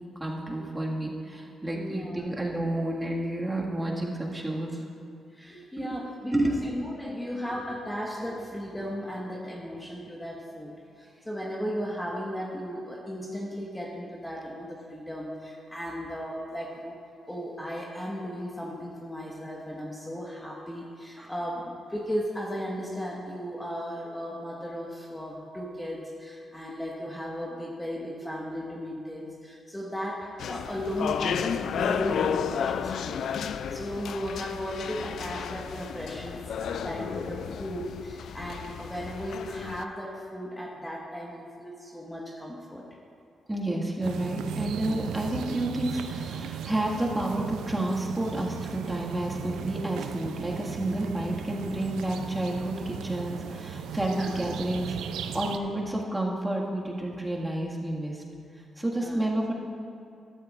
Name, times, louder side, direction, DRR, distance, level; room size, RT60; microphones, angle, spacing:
voice 1, 0.2-4.8 5.8-6.0 6.3-6.6 21.2-21.3 43.5-58.2 58.8-59.5, right 1 dB, 15° right, -2 dB, 1.8 m, -30 dB
voice 2, 1.7-2.3 5.3-10.7 11.0-17.0 17.3-33.3 33.7-42.8 44.7-45.0 54.0-54.4 58.9-59.2, equal, 10° left, -2 dB, 1.4 m, -36 dB
sound 1, 30.4-39.9, left 7 dB, 75° left, 0.3 m, -32 dB
sound 2, 44.0-55.6, right 8 dB, 85° right, 0.4 m, -37 dB
13.5 x 12.5 x 2.5 m, 2.4 s
supercardioid pair, 60°, 0 cm